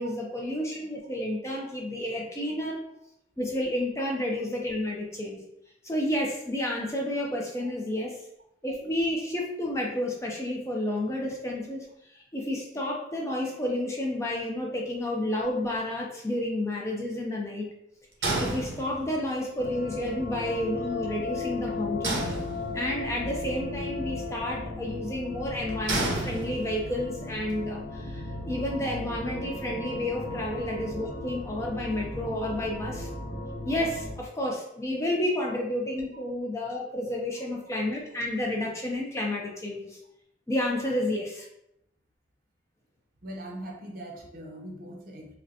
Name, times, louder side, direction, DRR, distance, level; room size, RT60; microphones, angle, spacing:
voice 1, 0.0-2.8 3.4-5.4 5.8-8.2 8.6-17.7 18.4-22.2 22.7-33.1 33.6-40.0 40.5-41.5, left 1 dB, 15° left, -1 dB, 0.4 m, -31 dB
sound 1, 18.2-19.3 22.0-23.1 25.9-27.0, right 2 dB, 85° right, 0.9 m, -31 dB
sound 2, 19.6-34.1, left 2 dB, 65° left, 0.8 m, -36 dB
voice 2, 43.2-45.3, right 1 dB, 45° right, 0 dB, 0.7 m, -41 dB
4.9 x 2.1 x 2.7 m, 0.80 s
head